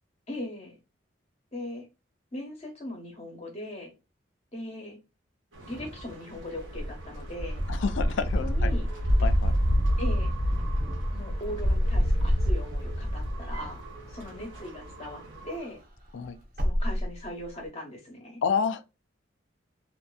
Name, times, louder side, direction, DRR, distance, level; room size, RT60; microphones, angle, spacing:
voice 1, 0.3-0.8 1.5-1.9 2.3-3.9 4.5-5.0 5.6-7.6 8.4-8.9 10.0-10.3 11.1-13.8 14.1-15.8 16.6-18.4, left 1 dB, 35° left, 0.8 m, -39 dB
sound 1, 5.5-15.6, equal, 85° right, 0.8 m, -28 dB
voice 2, 7.7-8.7 9.2-9.6 16.1-16.4 18.4-18.8, left 6 dB, 70° left, 0.3 m, -29 dB
Wind / Car, 9.1-14.9 15.2-17.7, equal, 45° right, 0.6 m, -36 dB
2.5 x 2.5 x 2.3 m
head